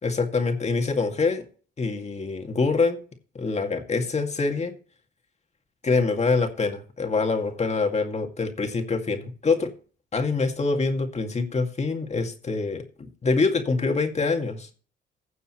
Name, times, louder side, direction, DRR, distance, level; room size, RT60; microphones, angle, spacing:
voice 1, 0.0-1.4 1.8-3.0 3.3-4.7 5.8-9.7 10.1-14.7, left 4 dB, 35° left, 4 dB, 2.1 m, -25 dB
16.5 x 6.8 x 3.1 m, 0.40 s
cardioid pair, 90°, 20 cm